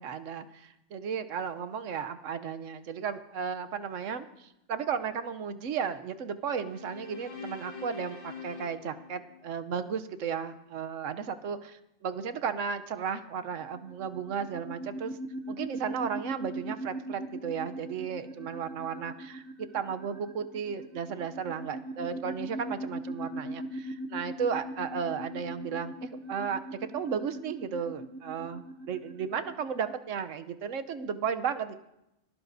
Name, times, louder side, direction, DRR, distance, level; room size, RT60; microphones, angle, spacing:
voice 1, 0.0-15.2 15.5-19.4 19.7-26.6 26.9-31.7, right 7 dB, 75° right, 10 dB, 1.1 m, -34 dB
sound 1, 6.5-9.9, left 5 dB, 65° left, 1.8 m, -45 dB
sound 2, 13.7-29.9, right 1 dB, 50° right, 1.0 m, -40 dB
30.0 x 11.0 x 2.7 m, 0.88 s
omnidirectional pair, 1.3 m